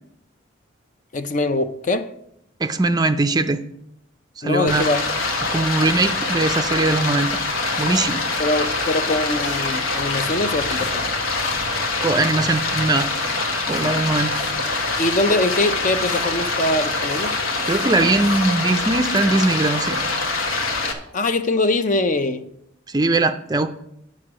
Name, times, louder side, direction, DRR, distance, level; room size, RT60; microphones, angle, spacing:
voice 1, 1.1-2.1 4.4-5.0 8.4-11.1 15.0-17.3 21.1-22.4, left 2 dB, 40° left, 0.5 m, -22 dB
voice 2, 2.6-3.6 4.4-4.9 5.4-7.4 7.8-8.2 12.0-13.1 13.7-14.4 17.7-20.0 22.9-23.7, right 2 dB, 20° right, 0.4 m, -20 dB
Stream, 4.7-20.9, left 3 dB, 90° left, 1.4 m, -24 dB
sound 1, 7.0-12.3 13.1-18.6, left 3 dB, 65° left, 2.1 m, -43 dB
9.6 x 6.4 x 6.1 m
head